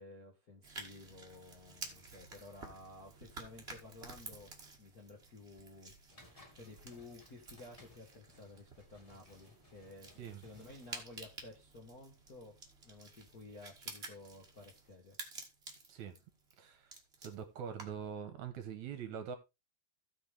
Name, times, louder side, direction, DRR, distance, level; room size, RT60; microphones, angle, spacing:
voice 1, 0.0-5.9 6.3-12.6 12.8-15.2, left 2 dB, 40° left, 1.3 m, -54 dB
sound 1, 0.6-18.1, right 3 dB, 25° right, 1.4 m, -52 dB
sound 2, 6.1-11.3, left 1 dB, 15° left, 1.4 m, -62 dB
voice 2, 16.6-16.9 17.2-19.4, right 7 dB, 65° right, 2.2 m, -43 dB
16.5 x 5.6 x 3.4 m
omnidirectional pair, 4.0 m